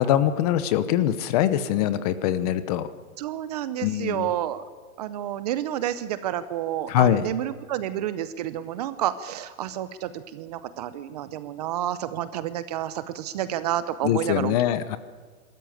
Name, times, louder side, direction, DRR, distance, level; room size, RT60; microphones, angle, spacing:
voice 1, 0.0-2.9 3.8-4.3 6.9-7.3 14.0-15.0, left 11 dB, 30° left, 14 dB, 0.7 m, -23 dB
voice 2, 3.2-4.6 5.0-14.6, right 11 dB, 30° right, 14 dB, 0.6 m, -30 dB
23.0 x 13.5 x 9.1 m, 1.5 s
hypercardioid pair, 155°, 42 cm